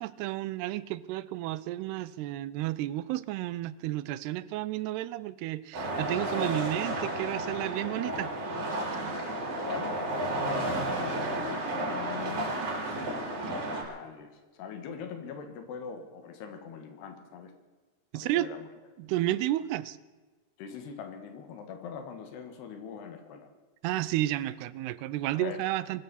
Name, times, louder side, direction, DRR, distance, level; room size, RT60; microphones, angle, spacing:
voice 1, 0.0-8.3 18.1-18.5 19.0-20.0 23.8-26.0, right 15 dB, 85° right, 17 dB, 2.7 m, -32 dB
sound 1, 5.7-13.8, right 1 dB, 60° right, 5.8 m, -32 dB
voice 2, 9.5-10.6 11.0-12.4 13.5-17.5 18.1-18.7 20.6-23.5 25.4-25.6, left 6 dB, 85° left, 6 dB, 3.7 m, -42 dB
23.5 x 14.0 x 4.2 m, 1.3 s
omnidirectional pair, 4.6 m